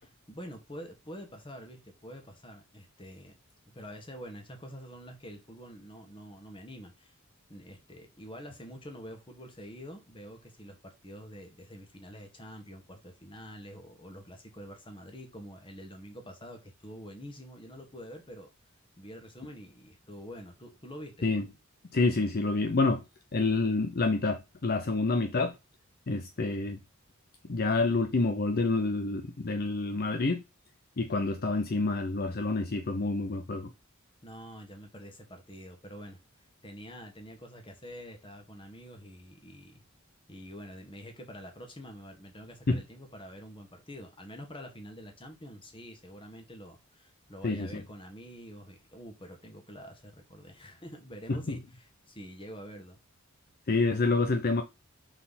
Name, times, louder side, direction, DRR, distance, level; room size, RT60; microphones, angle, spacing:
voice 1, 0.0-3.4 3.7-7.1 7.5-18.5 19.0-21.3 34.2-36.2 36.6-39.8 40.3-53.0, equal, 25° left, 1.8 m, -46 dB
voice 2, 21.9-23.0 23.3-25.6 26.1-26.8 27.5-30.4 31.0-33.7 42.7-42.8 47.4-47.8 51.3-51.6 53.7-54.6, left 3 dB, 45° left, 0.6 m, -28 dB
5.7 x 4.4 x 4.2 m
head